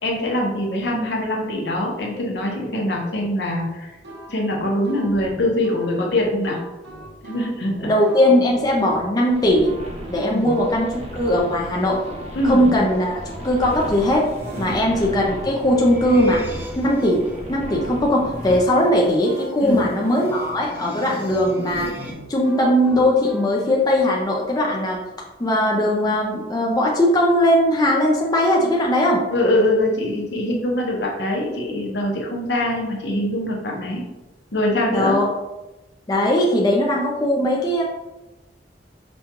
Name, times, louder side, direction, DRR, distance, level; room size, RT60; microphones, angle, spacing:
voice 1, 0.0-3.9 4.3-6.6 7.2-7.9 10.3-10.5 12.3-12.7 14.6-14.8 19.6-19.8 29.3-34.0 34.5-35.2, left 1 dB, 70° left, -1 dB, 0.8 m, -23 dB
sound 1, 4.0-23.5, right 1 dB, 75° right, 0.8 m, -40 dB
voice 2, 7.8-9.8 10.1-12.0 12.4-14.3 14.6-16.4 16.8-21.9 22.3-25.0 25.4-29.2 34.9-35.3 36.1-37.8, left 1 dB, 20° left, -3 dB, 0.5 m, -19 dB
sound 2, 9.3-18.6, equal, 35° right, 0.7 m, -36 dB
sound 3, 13.7-22.1, left 1 dB, 10° right, 0.9 m, -39 dB
5.2 x 2.2 x 2.9 m, 1.0 s
head